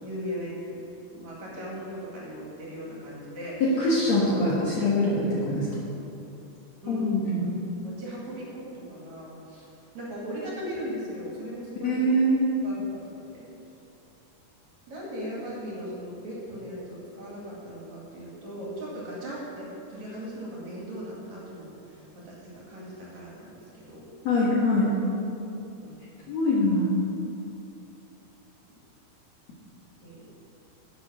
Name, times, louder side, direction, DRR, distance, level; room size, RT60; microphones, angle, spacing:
voice 1, 0.0-0.8 1.1-3.6 6.8-7.1 7.8-9.6 9.9-12.0 12.6-13.0 13.3-13.5 14.9-24.0 25.8-26.1 30.0-30.4, equal, 50° right, -5 dB, 3.2 m, -38 dB
voice 2, 3.6-5.7 6.9-7.5 11.8-12.4 24.2-24.9 26.3-26.9, left 1 dB, 55° left, -6 dB, 2.2 m, -23 dB
10.5 x 8.2 x 6.2 m, 2.8 s
omnidirectional pair, 4.5 m